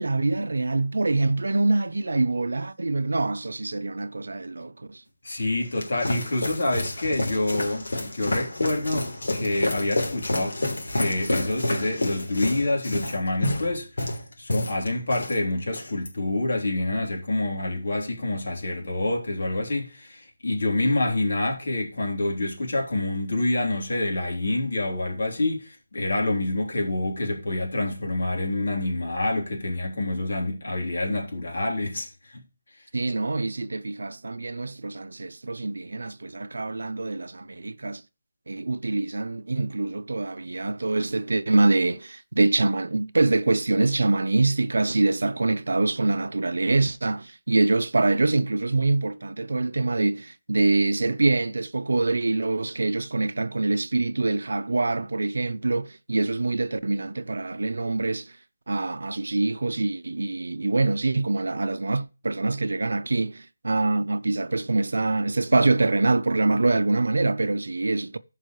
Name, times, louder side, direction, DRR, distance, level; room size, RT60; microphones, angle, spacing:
voice 1, 0.0-5.0 20.8-21.0 32.9-38.0 38.5-58.3 58.7-68.2, right 2 dB, 75° right, 0.7 m, -25 dB
voice 2, 5.2-10.6 10.9-32.4, left 2 dB, 55° left, 3.4 m, -27 dB
sound 1, 5.4-15.4 15.7-16.1, left 1 dB, 75° left, 3.1 m, -29 dB
15.0 x 5.5 x 3.1 m
figure-of-eight pair, 175°, 0 cm